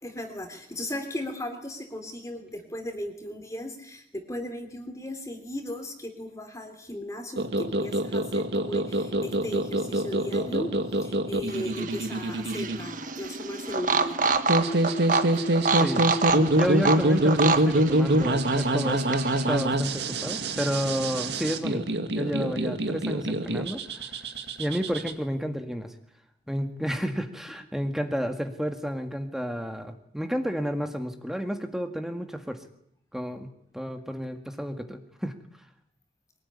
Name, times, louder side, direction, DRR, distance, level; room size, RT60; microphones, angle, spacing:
voice 1, 0.0-10.7 11.0-14.3, left 1 dB, 20° left, 5 dB, 3.2 m, -36 dB
sound 1, 7.4-25.1, right 1 dB, 70° right, 2.2 m, -26 dB
sound 2, 11.5-19.6, right 4 dB, 50° right, 1.4 m, -28 dB
voice 2, 15.8-16.3 16.5-19.2 19.5-21.8 22.2-24.1 24.6-25.9 26.5-32.6 33.1-33.5 33.7-35.4, equal, ahead, 5 dB, 1.8 m, -31 dB
23.5 x 19.0 x 9.8 m, 0.70 s
head